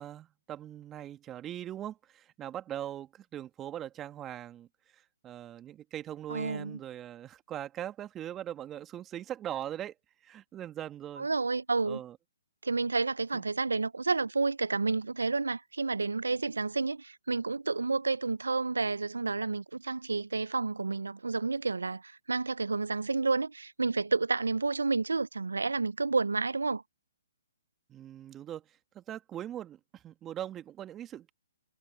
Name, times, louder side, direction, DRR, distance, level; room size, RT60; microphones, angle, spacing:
voice 1, 0.0-4.7 4.9-9.9 10.2-11.3 11.9-12.2 13.3-13.4 27.9-31.3, right 11 dB, 20° right, 2.1 m, -41 dB
voice 2, 6.3-6.8 11.2-12.0 12.6-26.8, right 3 dB, 85° right, 0.5 m, -30 dB
hypercardioid pair, 135°, 0 cm